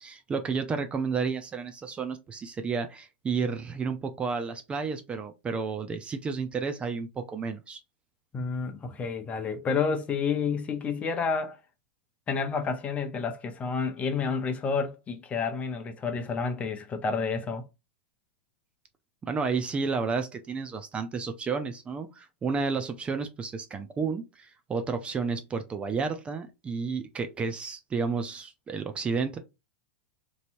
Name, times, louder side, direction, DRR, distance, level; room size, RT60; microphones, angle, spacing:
voice 1, 0.0-7.8 19.2-29.4, right 5 dB, 20° right, 0.5 m, -31 dB
voice 2, 8.3-11.6 12.3-17.6, left 5 dB, 25° left, 0.7 m, -30 dB
3.1 x 2.7 x 2.6 m
hypercardioid pair, 115°, 6 cm